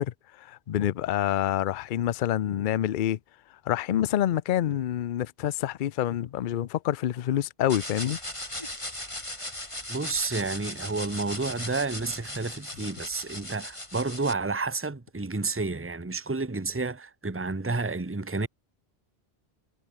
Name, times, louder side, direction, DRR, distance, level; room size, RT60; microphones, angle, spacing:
voice 1, 0.0-3.2 3.7-8.2, left 11 dB, 60° left, 0.7 m, -27 dB
sound 1, 7.7-14.3, left 1 dB, 30° left, 4.5 m, -38 dB
voice 2, 9.9-18.5, right 3 dB, 15° right, 1.0 m, -30 dB
omnidirectional pair, 1.0 m